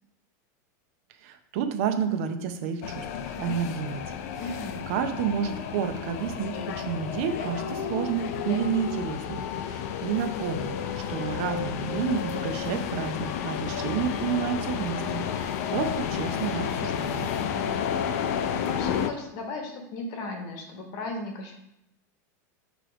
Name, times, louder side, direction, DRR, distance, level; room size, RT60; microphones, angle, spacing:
voice 1, 1.2-4.0 4.9-10.8 11.1-17.4, right 7 dB, 45° right, 8 dB, 0.6 m, -30 dB
sound 1, 2.8-19.1, left 8 dB, 55° left, 0.4 m, -31 dB
voice 2, 4.4-4.8 17.5-21.6, left 2 dB, 35° left, 3 dB, 1.0 m, -37 dB
6.7 x 3.1 x 5.0 m, 0.82 s
supercardioid pair, 175°, 10 cm